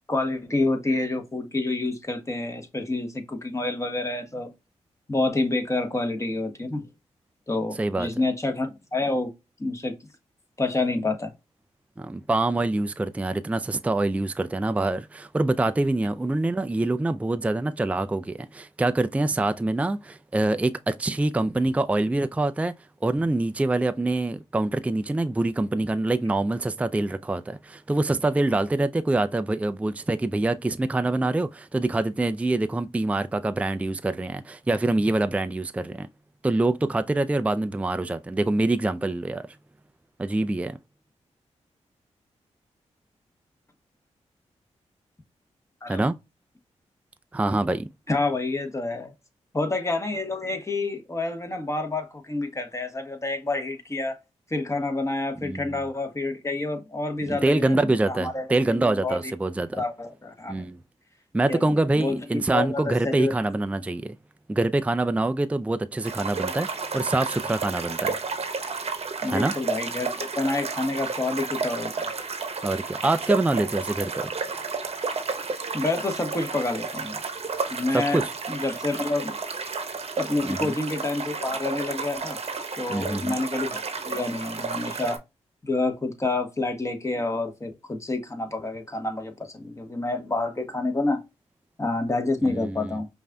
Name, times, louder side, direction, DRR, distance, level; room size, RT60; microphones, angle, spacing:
voice 1, 0.1-4.5 5.1-6.8 7.5-9.3 9.6-9.9 10.6-11.3 45.8-46.0 48.1-49.1 49.5-54.2 54.5-59.3 59.7-60.7 61.5-62.2 62.5-63.3 69.2-72.1 75.7-77.2 77.7-78.2 78.5-79.3 80.2-82.4 82.8-85.2 85.6-91.2 91.8-93.1, left 2 dB, 25° left, 1.3 m, -28 dB
voice 2, 7.8-8.1 12.0-22.7 23.0-36.1 36.4-39.5 40.2-40.8 45.9-46.2 47.3-47.9 55.4-55.8 57.3-59.8 60.5-60.8 61.3-64.2 64.5-68.2 69.3-69.5 72.6-74.3 77.9-78.3 80.4-80.7 82.9-83.4 92.4-93.0, right 2 dB, 10° right, 0.4 m, -25 dB
sound 1, 66.0-85.2, right 4 dB, 55° right, 0.9 m, -32 dB
5.3 x 2.6 x 2.2 m
cardioid pair, 55°, 12 cm